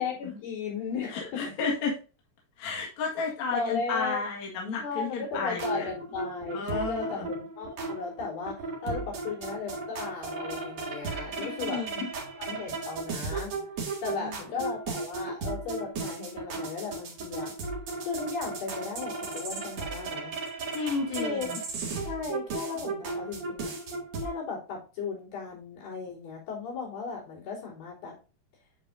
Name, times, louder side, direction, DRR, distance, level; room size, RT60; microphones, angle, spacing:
voice 1, 0.0-1.5 3.2-4.2 4.8-8.6 8.8-11.8 12.4-13.5 14.0-17.5 18.0-20.3 21.2-21.5 22.1-23.7 24.2-28.2, left 5 dB, 80° left, -6 dB, 5.3 m, -36 dB
voice 2, 1.1-2.0 2.6-5.9 6.5-7.3 11.4-12.1 14.2-14.3 20.7-21.6, left 4 dB, 55° left, -3 dB, 3.0 m, -32 dB
sound 1, 5.3-24.3, right 3 dB, 55° right, 3.1 m, -36 dB
9.3 x 5.2 x 2.6 m, 0.33 s
omnidirectional pair, 3.9 m